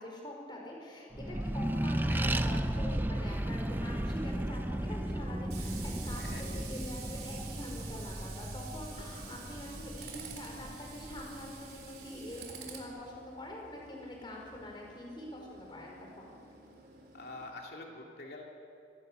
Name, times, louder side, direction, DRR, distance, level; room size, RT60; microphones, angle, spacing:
voice 1, 0.0-16.4, left 1 dB, 25° left, -1 dB, 4.4 m, -45 dB
Accelerating revving vroom, 1.1-12.1, right 1 dB, 10° right, 0.5 m, -35 dB
Tools, 3.1-17.5, right 5 dB, 65° right, 3.7 m, -50 dB
voice 2, 6.1-6.6 17.1-18.5, left 2 dB, 65° left, 0 dB, 2.6 m, -46 dB
25.0 x 17.0 x 6.8 m, 2.6 s
head